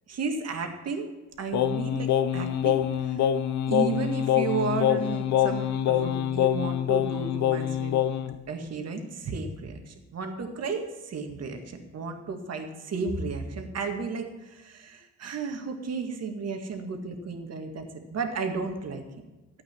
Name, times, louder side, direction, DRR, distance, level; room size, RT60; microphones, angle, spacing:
voice 1, 0.1-1.1 1.4-2.8 3.0-3.3 3.7-7.9 8.5-19.0, right 4 dB, 55° right, 5 dB, 2.0 m, -33 dB
Singing, 1.5-8.4, left 10 dB, 65° left, 0.8 m, -25 dB
12.5 x 8.7 x 5.9 m, 1.2 s
cardioid pair, 90°, 30 cm